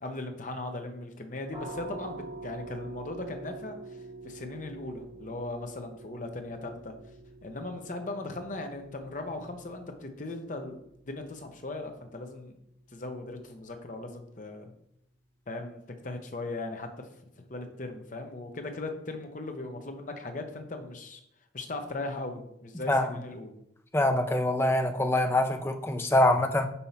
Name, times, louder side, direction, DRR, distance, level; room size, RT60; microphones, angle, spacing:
voice 1, 0.0-4.0 4.2-6.9 7.4-10.8 11.1-12.6 12.9-14.7 15.5-16.9 17.5-21.2 21.5-23.6, left 2 dB, 40° left, 0.7 m, -38 dB
sound 1, 1.5-13.0, right 2 dB, 40° right, 1.2 m, -47 dB
voice 2, 23.9-26.6, left 1 dB, 10° left, 0.4 m, -24 dB
5.6 x 4.5 x 4.2 m
head